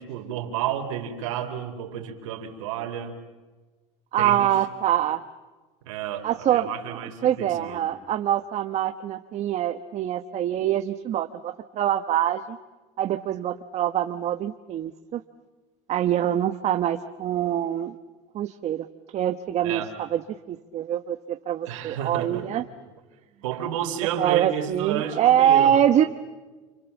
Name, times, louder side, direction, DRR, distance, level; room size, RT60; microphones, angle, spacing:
voice 1, 0.0-3.1 4.2-4.5 5.9-7.8 19.6-19.9 21.7-22.7 23.4-25.8, right 10 dB, 80° right, 4 dB, 4.4 m, -31 dB
voice 2, 4.1-5.2 6.2-12.6 13.0-15.2 15.9-18.0 18.3-18.9 19.1-20.2 20.5-22.6 24.2-26.0, right 10 dB, 45° right, 7 dB, 1.2 m, -24 dB
29.5 x 27.0 x 7.3 m, 1.3 s
supercardioid pair, 110°, 16 cm